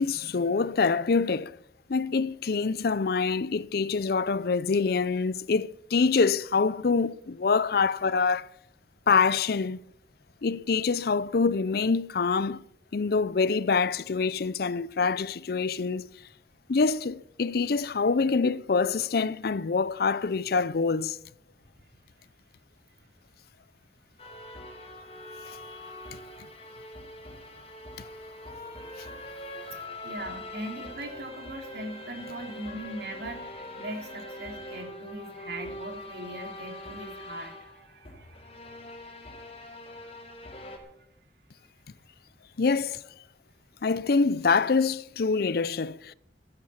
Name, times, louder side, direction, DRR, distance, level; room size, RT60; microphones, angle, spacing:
voice 1, 0.0-1.5 1.9-8.5 9.1-9.8 10.4-12.6 12.9-16.1 16.7-21.2 42.6-43.0 43.8-46.1, left 4 dB, 60° left, 0.5 m, -25 dB
sound 1, 24.2-40.8, left 1 dB, 35° left, 3.7 m, -43 dB
voice 2, 26.1-26.4 29.8-38.8 40.0-40.5 41.0-41.1, right 1 dB, 65° right, 3.5 m, -41 dB
16.0 x 11.0 x 7.2 m
head